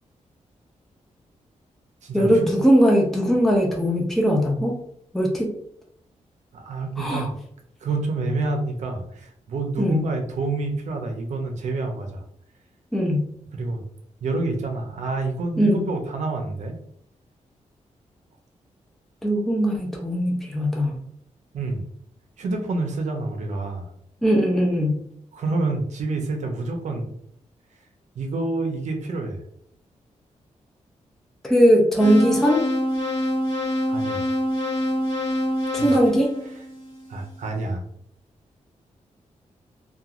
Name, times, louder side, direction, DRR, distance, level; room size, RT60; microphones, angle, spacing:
voice 1, 2.1-4.8 5.1-5.5 7.0-7.3 9.8-10.1 12.9-13.3 15.6-15.8 19.2-20.9 24.2-25.0 31.4-32.6 35.7-36.3, equal, ahead, 0 dB, 0.4 m, -20 dB
voice 2, 6.5-7.3 7.8-12.2 13.5-13.8 14.2-16.8 21.5-21.8 22.4-23.9 25.3-27.1 28.2-29.4 33.8-34.3 35.8-36.0 37.1-37.8, right 3 dB, 70° right, 3 dB, 0.5 m, -28 dB
sound 1, 32.0-37.1, left 1 dB, 35° left, 1.1 m, -26 dB
2.9 x 2.2 x 2.4 m, 0.68 s
wide cardioid pair, 170°, 13 cm